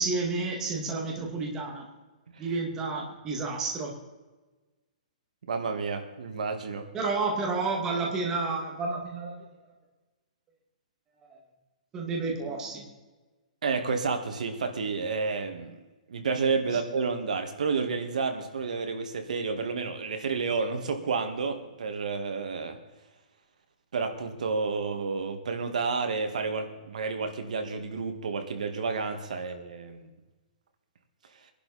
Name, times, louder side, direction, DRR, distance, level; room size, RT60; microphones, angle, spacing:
voice 1, 0.0-1.9 2.4-4.0 6.9-9.4 11.3-11.4 11.9-12.8, right 3 dB, 10° right, -1 dB, 2.0 m, -30 dB
voice 2, 5.5-6.9 13.6-15.8 16.1-22.8 23.9-30.1, right 4 dB, 65° right, 6 dB, 2.0 m, -30 dB
22.5 x 11.5 x 4.3 m, 1.2 s
hypercardioid pair, 175°, 4 cm